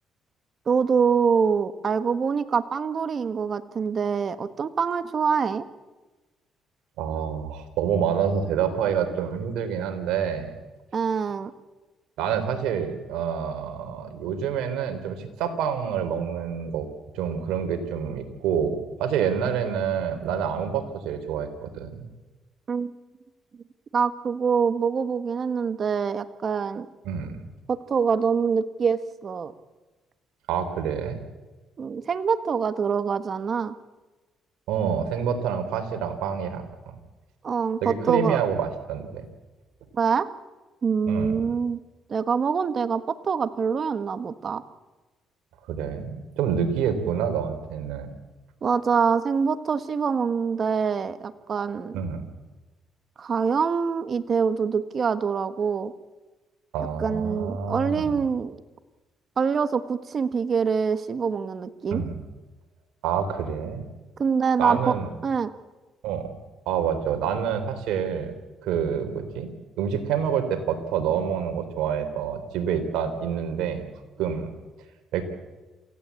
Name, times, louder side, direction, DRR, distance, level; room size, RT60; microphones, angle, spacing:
voice 1, 0.7-5.7 10.9-11.5 22.7-22.9 23.9-26.9 27.7-29.5 31.8-33.7 37.4-38.4 39.9-40.3 40.8-41.8 42.1-44.6 48.6-52.0 53.2-55.9 57.0-58.6 59.4-62.0 64.2-64.9 65.2-65.5, right 6 dB, 45° right, 11 dB, 1.5 m, -25 dB
voice 2, 7.0-10.5 12.2-16.9 17.1-22.1 27.1-27.4 30.5-31.2 34.7-36.6 37.8-39.2 41.1-41.3 45.7-48.2 51.9-52.2 56.7-58.2 61.9-62.2 63.0-63.9 64.6-65.1 66.0-66.3 66.7-68.3 68.6-69.5 69.8-73.9 74.2-74.5 75.1-75.2, right 7 dB, 85° right, 7 dB, 3.7 m, -27 dB
28.0 x 16.0 x 8.4 m, 1.2 s
cardioid pair, 85°, 0 cm